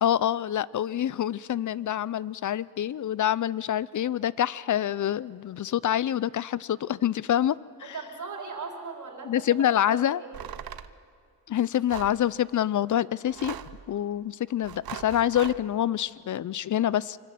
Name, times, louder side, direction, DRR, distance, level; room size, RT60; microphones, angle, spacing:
voice 1, 0.0-8.0 9.2-10.2 11.5-13.6 13.9-17.2, left 11 dB, 50° left, 21 dB, 0.5 m, -26 dB
voice 2, 7.8-9.3 9.9-10.5, right 4 dB, 50° right, 2 dB, 4.0 m, -39 dB
sound 1, 10.3-10.9 11.9-12.2 13.2-13.8 14.6-15.6, right 10 dB, 65° right, 0.9 m, -39 dB
25.0 x 24.5 x 7.7 m, 2.3 s
wide cardioid pair, 115°, 38 cm